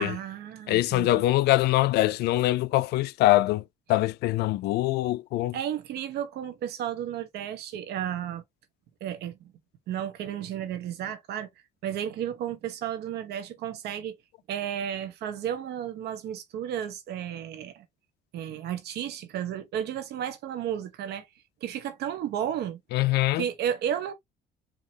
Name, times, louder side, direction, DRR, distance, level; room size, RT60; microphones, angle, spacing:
voice 1, 0.0-1.1 5.5-8.4 9.0-9.5 9.9-11.5 11.8-14.2 14.5-17.8 18.3-21.3 21.6-22.8 23.3-24.1, right 10 dB, 75° right, 1.1 m, -33 dB
voice 2, 0.7-3.6 3.9-5.6 22.9-23.4, left 16 dB, 75° left, 0.4 m, -23 dB
4.7 x 2.9 x 2.8 m
cardioid pair, 110°, 17 cm